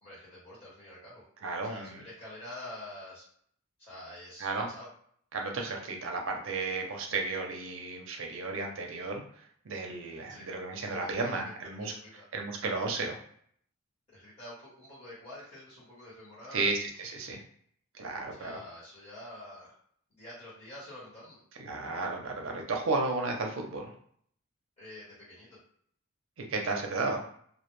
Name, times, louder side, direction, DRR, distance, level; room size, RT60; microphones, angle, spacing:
voice 1, 0.0-1.2 1.7-3.3 3.8-4.9 10.3-10.5 10.8-12.2 14.1-16.7 18.4-19.7 20.1-21.4 24.8-25.6, left 1 dB, 30° left, -8 dB, 1.1 m, -47 dB
voice 2, 1.4-2.0 4.4-4.7 5.3-11.9 12.3-13.2 16.5-17.4 17.9-18.6 21.6-23.9 26.4-27.3, right 3 dB, 60° right, 1 dB, 0.5 m, -33 dB
2.2 x 2.1 x 3.0 m, 0.63 s
head